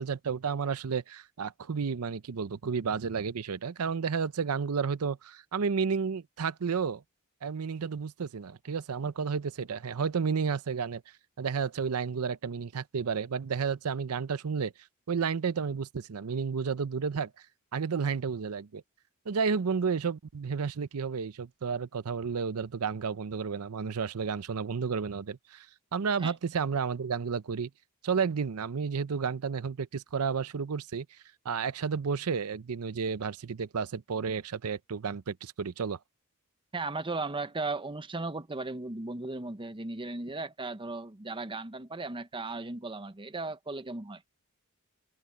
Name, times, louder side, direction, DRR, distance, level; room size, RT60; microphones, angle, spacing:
voice 1, 0.0-7.0 7.4-11.0 11.4-14.7 15.1-17.3 17.7-18.8 19.3-25.7 25.9-27.7 28.0-31.1 31.4-36.0, right 5 dB, 90° right, 0.6 m, -31 dB
voice 2, 36.7-44.2, right 3 dB, 25° right, 0.9 m, -36 dB
head